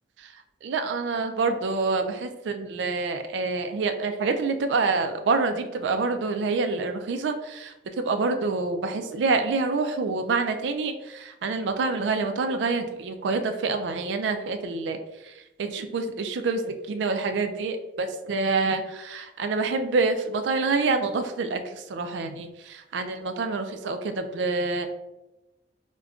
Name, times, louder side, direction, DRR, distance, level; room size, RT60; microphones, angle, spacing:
voice 1, 0.6-7.7 8.0-15.0 15.2-15.3 15.6-24.9, right 3 dB, 70° right, 7 dB, 0.4 m, -27 dB
5.0 x 2.2 x 2.3 m, 0.99 s
head